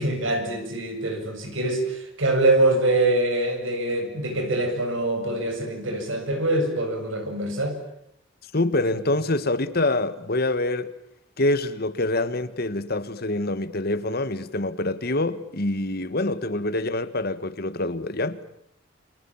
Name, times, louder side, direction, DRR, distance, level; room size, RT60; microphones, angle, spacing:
voice 1, 0.0-7.8, right 2 dB, 80° right, 7.1 m, -24 dB
voice 2, 8.5-10.9 11.4-18.4, left 2 dB, 50° left, 1.6 m, -25 dB
29.0 x 27.5 x 7.2 m
head